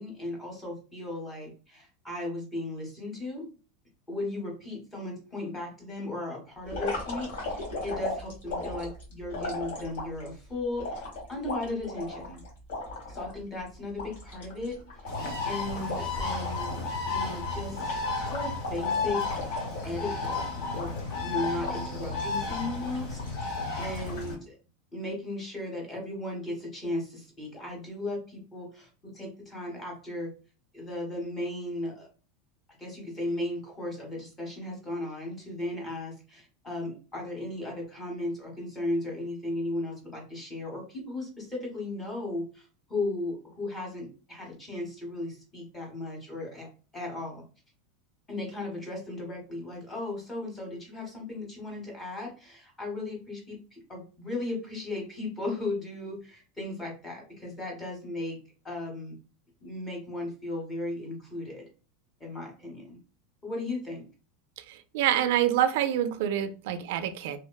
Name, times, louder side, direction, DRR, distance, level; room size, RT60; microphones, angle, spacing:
voice 1, 0.0-3.4 4.1-12.4 13.1-14.8 15.4-19.4 19.8-24.6 24.9-30.3 30.7-32.1 32.8-46.7 46.9-47.4 48.3-58.4 58.6-59.2 59.6-61.6 62.2-63.0 63.4-64.0, left 2 dB, 10° left, 0.8 m, -36 dB
sound 1, 6.7-10.3 10.8-13.3 13.7-13.8 14.0-16.9 17.2-17.4 17.7-20.2 20.7-21.3 21.6-22.3 22.8-23.4 23.8-24.3, left 2 dB, 80° left, 1.5 m, -37 dB
Bird, 15.1-24.3, left 3 dB, 45° left, 0.9 m, -33 dB
voice 2, 64.7-67.4, right 11 dB, 55° right, 0.3 m, -26 dB
3.0 x 2.1 x 2.2 m
supercardioid pair, 180°, 0 cm